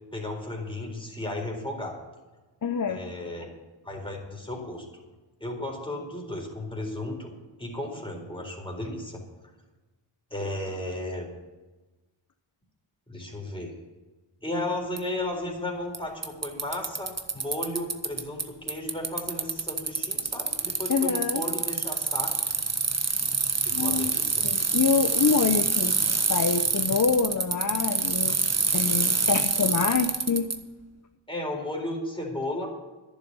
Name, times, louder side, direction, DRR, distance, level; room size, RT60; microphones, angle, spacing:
voice 1, 0.1-2.0 2.9-3.5 3.8-4.9 5.4-7.3 7.6-9.2 10.3-11.4 13.1-13.7 14.4-22.4 23.6-24.5 31.3-32.7, left 1 dB, 10° left, 0 dB, 4.2 m, -34 dB
voice 2, 2.6-3.0 20.9-21.4 23.7-24.1 24.4-26.0 26.3-28.4 28.7-30.5, left 5 dB, 40° left, 7 dB, 0.9 m, -26 dB
Bicycle, 15.0-15.1 15.9-16.0 16.2-18.4 18.7-30.6, right 4 dB, 30° right, 1.2 m, -26 dB
11.0 x 7.3 x 9.6 m, 1.2 s
cardioid pair, 50°, 50 cm